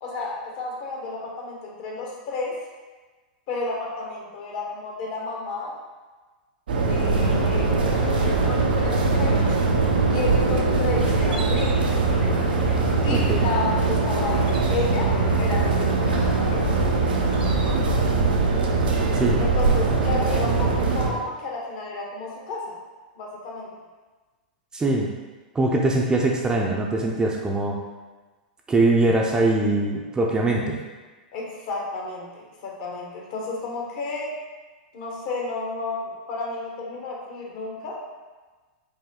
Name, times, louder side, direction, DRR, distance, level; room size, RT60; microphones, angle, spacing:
voice 1, 0.0-2.6 3.5-5.8 6.8-9.6 10.1-12.0 13.0-15.1 15.4-16.6 19.4-22.7 23.2-23.7 29.7-29.9 31.3-34.4 34.9-38.0, left 3 dB, 55° left, -2 dB, 1.2 m, -31 dB
sound 1, 6.7-21.1, right 3 dB, 80° right, 0.6 m, -22 dB
sound 2, 7.1-18.1, left 4 dB, 80° left, 1.4 m, -34 dB
voice 2, 13.1-13.4 19.1-19.4 24.7-25.1 25.5-27.8 28.7-30.8, right 2 dB, 15° right, -1 dB, 0.5 m, -22 dB
5.1 x 2.2 x 3.7 m, 1.3 s
hypercardioid pair, 110°, 5 cm